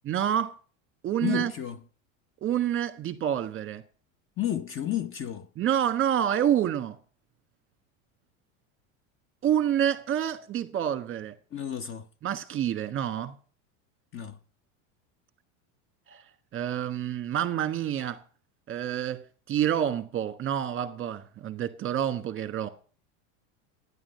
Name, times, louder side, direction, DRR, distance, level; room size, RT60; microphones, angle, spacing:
voice 1, 0.0-0.6 1.0-1.5 2.4-3.8 5.6-7.0 9.4-11.3 12.2-13.3 16.1-16.2 16.5-18.2 18.7-22.7, right 10 dB, 30° right, 1.4 m, -28 dB
voice 2, 1.2-1.8 4.4-5.5 11.5-12.1 14.1-14.4, left 11 dB, 30° left, 0.8 m, -31 dB
11.0 x 9.9 x 5.5 m
supercardioid pair, 110°, 40 cm